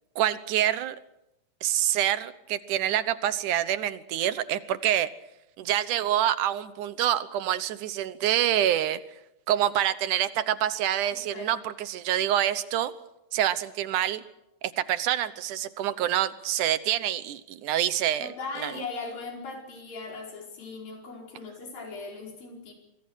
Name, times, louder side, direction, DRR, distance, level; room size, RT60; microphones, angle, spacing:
voice 1, 0.2-1.0 1.6-5.1 5.6-9.0 9.5-12.9 13.3-14.2 14.8-18.3 18.6-18.7, right 12 dB, 70° right, 14 dB, 2.3 m, -26 dB
voice 2, 11.1-11.5 18.2-22.7, left 3 dB, 75° left, 1 dB, 6.5 m, -39 dB
25.5 x 23.5 x 6.4 m, 0.87 s
omnidirectional pair, 4.0 m